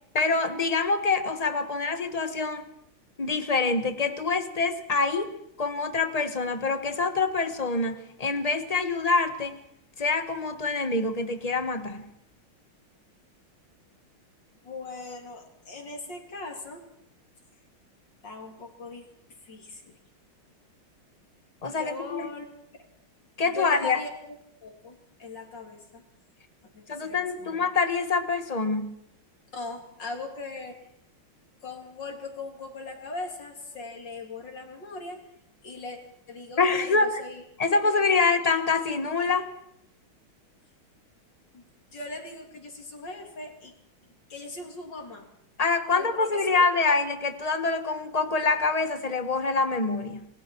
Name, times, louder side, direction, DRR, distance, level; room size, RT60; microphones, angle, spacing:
voice 1, 0.1-2.6 3.2-5.3 5.6-9.6 10.0-12.1 21.6-22.3 23.4-24.0 26.9-28.9 36.6-37.2 37.6-39.5 45.6-50.3, left 4 dB, 20° left, 8 dB, 1.2 m, -25 dB
voice 2, 14.6-16.8 18.2-19.1 19.4-19.9 21.7-22.4 23.4-24.3 24.6-26.0 26.7-27.7 29.5-30.8 31.6-35.2 35.6-36.0 36.3-37.4 37.7-38.3 41.5-41.6 41.9-43.7 44.3-45.3 45.9-46.4, left 3 dB, 55° left, 1 dB, 3.7 m, -39 dB
28.5 x 21.0 x 4.6 m, 0.75 s
omnidirectional pair, 2.3 m